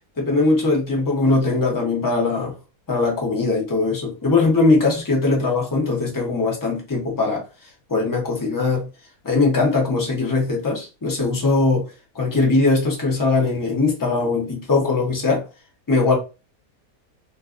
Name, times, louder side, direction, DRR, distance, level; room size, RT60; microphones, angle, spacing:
voice 1, 0.2-2.5 2.9-7.4 7.9-8.9 9.2-11.9 12.1-15.5 15.9-16.2, left 3 dB, 30° left, 0.3 m, -20 dB
2.5 x 2.4 x 2.4 m
omnidirectional pair, 1.6 m